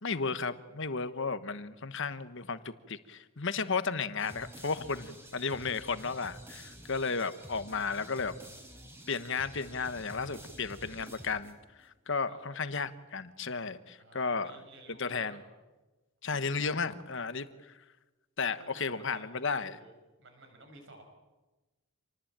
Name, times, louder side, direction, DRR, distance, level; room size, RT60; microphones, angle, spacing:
voice 1, 0.0-8.4 9.1-14.5 15.0-15.4 16.2-17.7 18.4-19.8, left 4 dB, 60° left, 12 dB, 1.2 m, -34 dB
sound 1, 4.2-11.8, right 1 dB, 10° right, 4.3 m, -50 dB
voice 2, 6.5-7.2 12.3-12.7 14.0-15.4 16.6-16.8 18.6-19.9 20.2-21.0, right 2 dB, 55° right, 5 dB, 6.5 m, -54 dB
27.5 x 19.5 x 8.8 m, 1.2 s
head